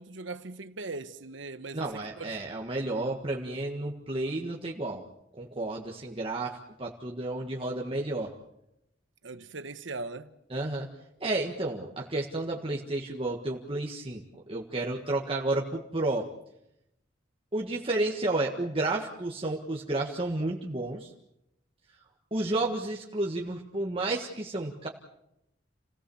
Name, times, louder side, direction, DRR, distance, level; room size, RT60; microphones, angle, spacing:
voice 1, 0.0-2.4 9.2-10.3, right 3 dB, 80° right, 1.2 m, -40 dB
voice 2, 1.7-5.0 5.4-8.3 10.5-10.9 11.2-16.3 17.5-21.1 22.3-24.9, right 2 dB, 30° right, 1.7 m, -31 dB
30.0 x 17.5 x 7.1 m
head